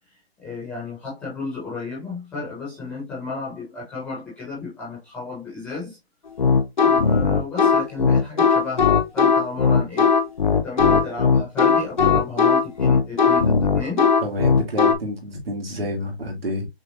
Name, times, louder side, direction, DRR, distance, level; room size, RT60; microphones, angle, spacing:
voice 1, 0.4-6.0 6.8-10.1 10.5-14.1, left 3 dB, 5° left, 1.2 m, -33 dB
sound 1, 6.4-14.9, left 5 dB, 50° left, 0.6 m, -18 dB
voice 2, 14.2-16.7, equal, 70° right, 2.1 m, -29 dB
6.2 x 2.5 x 2.6 m
hypercardioid pair, 165°, 31 cm